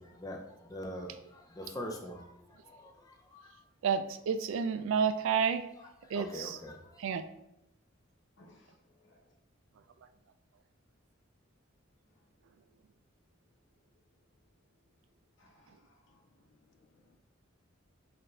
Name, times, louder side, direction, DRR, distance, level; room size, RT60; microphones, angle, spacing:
voice 1, 0.0-3.6 5.8-7.0, left 1 dB, 20° left, 1 dB, 0.5 m, -44 dB
voice 2, 3.8-5.7 6.1-6.6 7.0-7.2, right 6 dB, 70° right, 9 dB, 0.3 m, -30 dB
voice 3, 8.4-9.3 12.1-12.3 15.4-16.2, left 1 dB, 60° left, -1 dB, 0.9 m, -64 dB
voice 4, 16.1-17.2, left 4 dB, 80° left, 5 dB, 0.4 m, -69 dB
4.2 x 2.5 x 3.2 m, 0.85 s
head